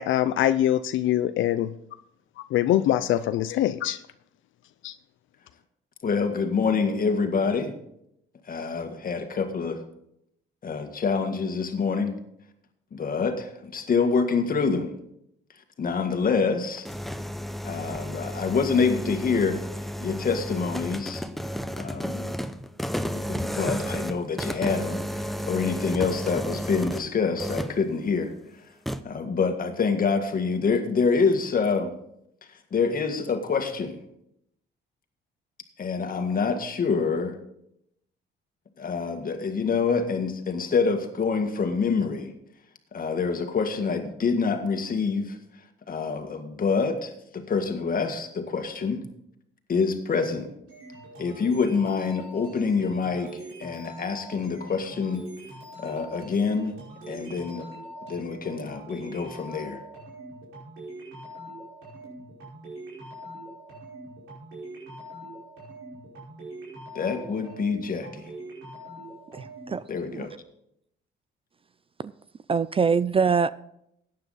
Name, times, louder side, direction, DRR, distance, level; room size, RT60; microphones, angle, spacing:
voice 1, 0.0-1.7 2.5-4.0 4.8-4.9, left 12 dB, 75° left, 12 dB, 0.5 m, -23 dB
voice 2, 6.0-7.7 8.5-9.8 10.6-12.1 12.9-14.9 15.8-16.9 17.6-19.6 20.0-21.2 21.8-22.4 23.3-28.3 29.1-31.9 32.7-34.0 35.8-37.4 38.8-42.3 42.9-45.4 45.9-49.0 49.7-50.5 51.2-53.3 53.6-55.3 55.8-56.8 57.1-57.7 58.1-59.8 67.0-68.2 69.9-70.3, left 5 dB, 45° left, 7 dB, 1.8 m, -26 dB
sound 1, 16.6-27.1 27.4-27.8 28.9-29.0, equal, ahead, 0.7 m, -32 dB
sound 2, 50.7-69.9, right 1 dB, 80° right, 5.1 m, -43 dB
voice 3, 69.3-69.8 70.1-70.3 72.5-73.5, right 5 dB, 30° right, 17 dB, 0.4 m, -23 dB
14.0 x 9.5 x 4.1 m, 0.77 s
cardioid pair, 90°, 20 cm